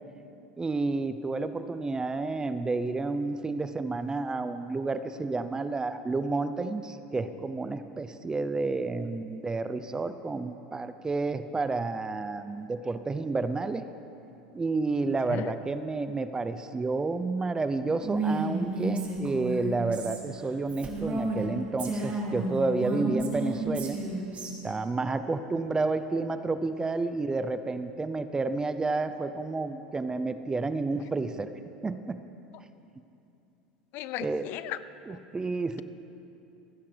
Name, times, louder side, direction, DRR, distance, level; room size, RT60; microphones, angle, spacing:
voice 1, 0.6-13.8 14.5-24.0 24.6-31.5 31.8-32.2 34.2-34.5 35.1-35.8, right 3 dB, 15° right, 11 dB, 0.7 m, -30 dB
Female speech woman speaking, 18.0-21.5 21.8-24.5, right 2 dB, 35° right, 2.7 m, -32 dB
voice 2, 33.9-34.8 35.1-35.2, left 14 dB, 55° left, 14 dB, 0.5 m, -35 dB
28.0 x 10.0 x 3.4 m, 2.8 s
hypercardioid pair, 95°, 4 cm